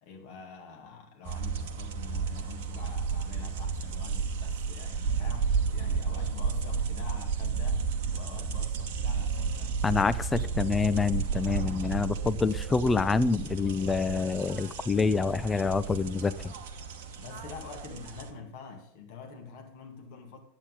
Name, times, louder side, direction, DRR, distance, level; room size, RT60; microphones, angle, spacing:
voice 1, 0.0-9.8 10.7-10.8 17.2-20.4, left 5 dB, 45° left, 2.0 m, -46 dB
sound 1, 1.3-18.3, right 5 dB, 50° right, 1.0 m, -32 dB
voice 2, 9.8-16.5, left 4 dB, 15° left, 0.4 m, -27 dB
9.8 x 8.4 x 3.9 m
figure-of-eight pair, 90°, 0 cm